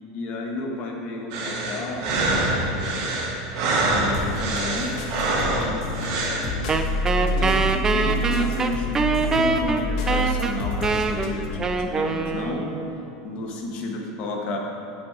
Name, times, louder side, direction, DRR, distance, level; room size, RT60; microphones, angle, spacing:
voice 1, 0.1-2.1 2.6-3.4 3.9-5.0 5.5-6.7 7.2-12.8 13.2-14.6, left 2 dB, 40° left, 0 dB, 1.3 m, -32 dB
sound 1, 1.3-6.5, right 2 dB, 55° right, 1.7 m, -25 dB
sound 2, 4.1-11.5, left 1 dB, 65° left, 1.2 m, -28 dB
Wind instrument woodwind instrument, 6.7-13.0, right 4 dB, 15° right, 0.4 m, -24 dB
9.2 x 6.0 x 4.9 m, 2.7 s
supercardioid pair, 160°, 3 cm